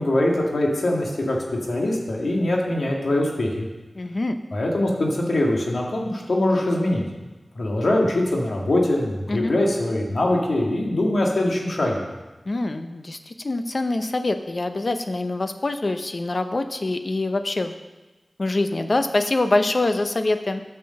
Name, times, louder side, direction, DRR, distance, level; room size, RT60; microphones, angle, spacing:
voice 1, 0.0-1.4 1.7-3.7 4.5-7.0 7.6-12.0, left 1 dB, 80° left, -1 dB, 1.8 m, -22 dB
voice 2, 3.9-4.4 9.3-9.5 12.5-17.7 18.4-20.6, left 2 dB, 50° left, 8 dB, 0.7 m, -24 dB
9.4 x 6.7 x 6.5 m, 1.2 s
wide cardioid pair, 80°, 0 cm